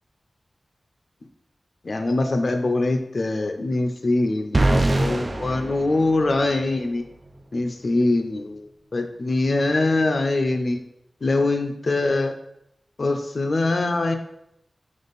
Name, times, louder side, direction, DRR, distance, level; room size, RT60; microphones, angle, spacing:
voice 1, 1.8-7.0 7.5-10.8 11.2-12.3 13.0-14.1, left 2 dB, 55° left, 6 dB, 0.6 m, -23 dB
sound 1, 4.5-6.7, right 2 dB, 40° right, 0.4 m, -23 dB
5.4 x 4.9 x 4.0 m, 0.78 s
wide cardioid pair, 95°, 0 cm